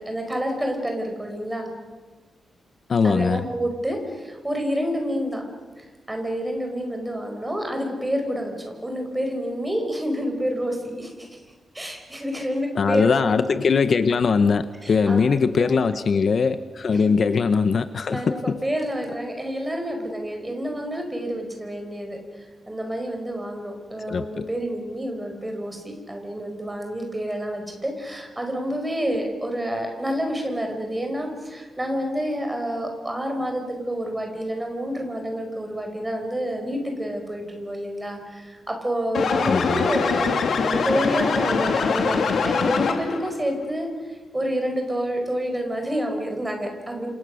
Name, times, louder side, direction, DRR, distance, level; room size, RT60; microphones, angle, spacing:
voice 1, 0.0-1.7 3.0-5.4 5.8-11.4 11.7-13.3 14.8-15.2 15.5-15.8 16.9-17.0 18.1-40.3 40.6-47.1, equal, 10° right, 3 dB, 4.7 m, -28 dB
voice 2, 2.9-3.4 12.8-18.6 24.1-24.5 39.5-39.9, left 5 dB, 45° left, 11 dB, 0.8 m, -21 dB
sound 1, 39.1-43.3, left 5 dB, 65° left, 2.7 m, -23 dB
29.0 x 27.0 x 6.4 m, 1.3 s
wide cardioid pair, 170°, 0 cm